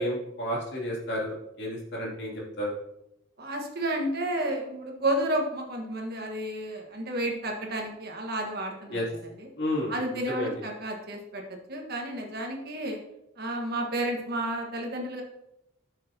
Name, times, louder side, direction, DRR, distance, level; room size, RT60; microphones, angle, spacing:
voice 1, 0.0-2.7 8.9-9.0 9.6-9.9 10.3-10.5, left 1 dB, 55° left, -4 dB, 2.6 m, -31 dB
voice 2, 3.4-9.5 9.9-13.0 13.4-15.2, right 1 dB, 50° right, 1 dB, 1.4 m, -31 dB
11.5 x 6.5 x 2.8 m, 0.86 s
head